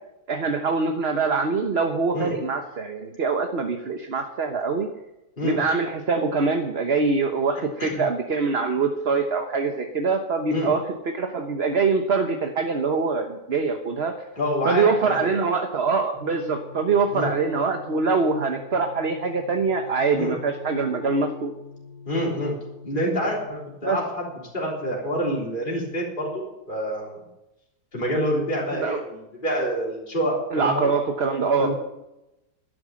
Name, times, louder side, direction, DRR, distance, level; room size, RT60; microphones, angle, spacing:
voice 1, 0.3-4.9 5.4-10.8 11.1-14.1 14.6-21.5 23.8-24.0 28.7-29.0 30.5-31.7, right 4 dB, 40° right, 5 dB, 1.2 m, -24 dB
voice 2, 14.4-15.3 17.1-17.3 20.2-20.4 22.1-22.5 22.8-24.3 24.5-27.2 27.9-30.9 31.6-31.7, equal, 30° left, -3 dB, 3.9 m, -27 dB
sound 1, 16.1-23.5, left 4 dB, 80° left, 3.6 m, -44 dB
12.5 x 10.0 x 7.6 m, 0.92 s
omnidirectional pair, 1.8 m